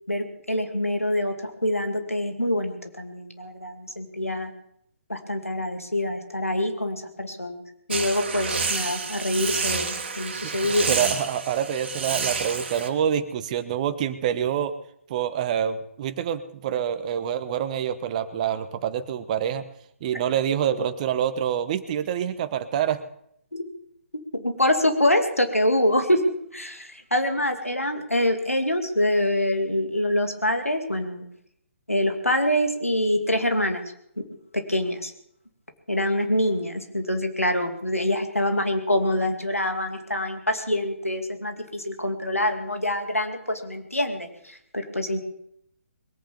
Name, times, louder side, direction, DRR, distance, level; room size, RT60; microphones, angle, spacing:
voice 1, 0.1-4.5 5.1-7.6 7.9-10.9 20.1-20.2 23.5-23.6 24.3-31.3 31.9-33.8 34.2-34.3 34.5-35.1 35.9-45.2, left 1 dB, 90° left, 6 dB, 2.2 m, -25 dB
sound 1, 7.9-12.9, right 5 dB, 50° right, 2.4 m, -29 dB
voice 2, 10.9-14.7 15.1-19.6 20.0-23.0, right 9 dB, 30° right, 11 dB, 1.2 m, -26 dB
21.5 x 9.1 x 7.1 m, 0.74 s
figure-of-eight pair, 135°, 7 cm